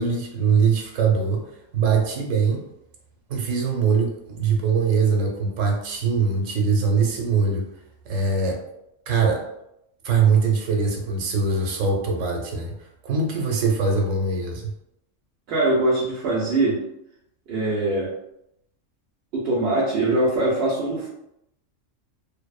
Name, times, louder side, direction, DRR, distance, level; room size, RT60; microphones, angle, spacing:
voice 1, 0.0-1.4 1.7-2.6 3.3-7.7 8.1-8.6 9.1-9.4 10.0-12.7 13.0-14.6, right 5 dB, 85° right, 1 dB, 1.0 m, -22 dB
voice 2, 15.5-16.8 17.5-18.1 19.3-21.1, right 2 dB, 60° right, -5 dB, 0.8 m, -22 dB
2.6 x 2.0 x 2.3 m, 0.80 s
omnidirectional pair, 1.3 m